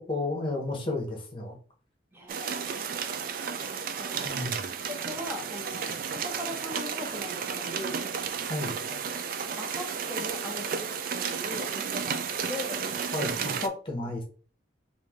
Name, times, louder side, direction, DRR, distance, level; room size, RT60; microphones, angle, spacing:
voice 1, 0.1-1.6 4.2-4.6 8.5-8.8 13.1-14.2, left 2 dB, 30° left, 1 dB, 0.9 m, -32 dB
voice 2, 2.1-2.7 4.0-4.5 4.9-8.0 8.6-9.0 9.6-12.9, left 1 dB, 15° right, 1 dB, 0.9 m, -40 dB
sound 1, 2.3-13.7, right 6 dB, 50° right, 0.3 m, -33 dB
3.2 x 2.6 x 3.5 m, 0.41 s
head